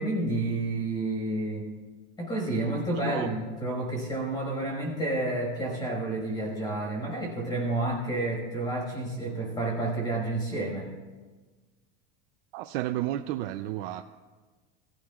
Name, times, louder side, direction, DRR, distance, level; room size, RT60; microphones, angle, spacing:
voice 1, 0.0-1.7 2.2-10.9, right 2 dB, 15° left, -1 dB, 5.3 m, -30 dB
voice 2, 12.5-14.0, right 14 dB, 70° right, 6 dB, 0.6 m, -32 dB
24.0 x 15.0 x 2.4 m, 1.3 s
cardioid pair, 170°, 30 cm